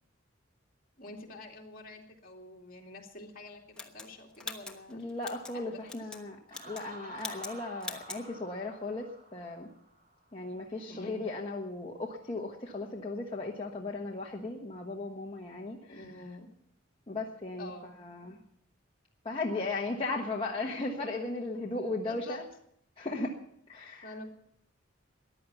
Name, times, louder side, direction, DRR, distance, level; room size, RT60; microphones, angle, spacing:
voice 1, 1.0-5.0 5.5-5.8 10.9-11.2 15.9-16.5 17.6-17.9 21.5-21.6 22.0-22.4 24.0-24.3, left 2 dB, 45° left, 0 dB, 2.6 m, -47 dB
sound 1, 3.8-5.5 5.9-6.2 6.5-6.9 7.2-7.5 7.8-8.2, left 3 dB, 5° left, 1.2 m, -42 dB
voice 2, 4.9-9.7 10.3-16.0 17.1-17.7 18.0-18.4 19.2-22.4 23.0-23.3 23.7-24.1, left 2 dB, 25° left, -2 dB, 1.3 m, -36 dB
Laughter, 6.5-10.2, right 1 dB, 40° right, 3.3 m, -50 dB
14.5 x 10.5 x 7.0 m, 0.71 s
head